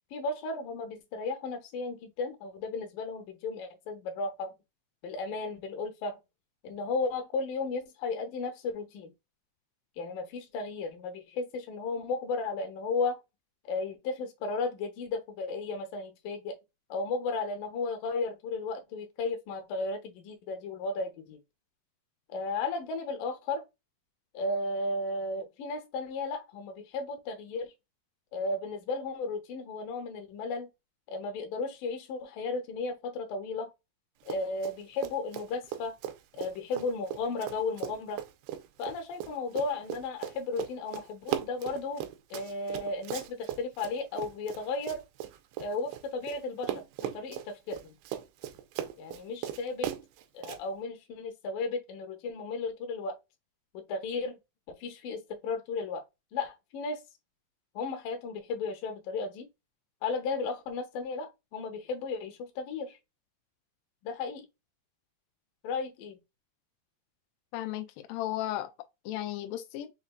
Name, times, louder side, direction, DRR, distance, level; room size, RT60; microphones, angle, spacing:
voice 1, 0.1-4.5 5.0-6.2 6.6-9.1 10.0-13.2 13.7-16.6 16.9-21.4 22.3-23.6 24.3-27.7 28.3-30.7 31.1-33.7 34.3-36.0 36.4-38.2 38.8-42.0 42.3-45.0 45.6-48.0 49.0-49.9 50.3-53.2 53.7-54.4 54.7-56.0 56.3-57.0 57.8-59.5 60.0-63.0 64.0-64.5 65.6-66.2, left 3 dB, 70° left, 2.3 m, -34 dB
Run, 34.2-34.8 35.0-46.4 46.6-50.6, right 11 dB, 85° right, 2.7 m, -38 dB
voice 2, 67.5-68.7 69.1-69.9, left 13 dB, 90° left, 2.0 m, -35 dB
6.4 x 2.6 x 2.2 m
omnidirectional pair, 4.5 m